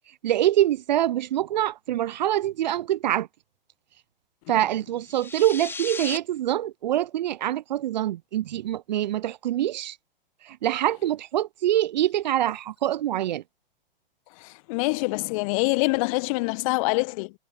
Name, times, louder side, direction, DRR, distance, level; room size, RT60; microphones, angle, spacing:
voice 1, 0.2-3.3 4.5-10.0 10.4-13.4, right 12 dB, 50° right, 0.6 m, -25 dB
sound 1, 5.0-6.2, left 4 dB, 10° left, 4.1 m, -35 dB
voice 2, 14.4-17.3, left 26 dB, 35° left, 1.2 m, -25 dB
figure-of-eight pair, 105°, 29 cm